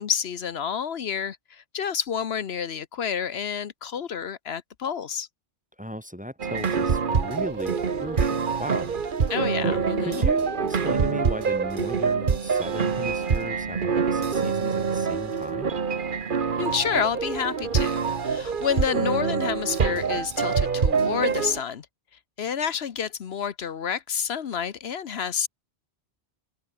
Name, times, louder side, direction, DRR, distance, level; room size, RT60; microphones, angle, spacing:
voice 1, 0.0-5.3 9.3-10.3 16.6-21.9 22.4-25.5, left 7 dB, 70° left, 1.1 m, -29 dB
voice 2, 5.8-9.3 9.6-15.7, equal, 5° right, 1.4 m, -36 dB
sound 1, 6.4-21.6, right 5 dB, 50° right, 1.3 m, -25 dB
open air
omnidirectional pair, 1.1 m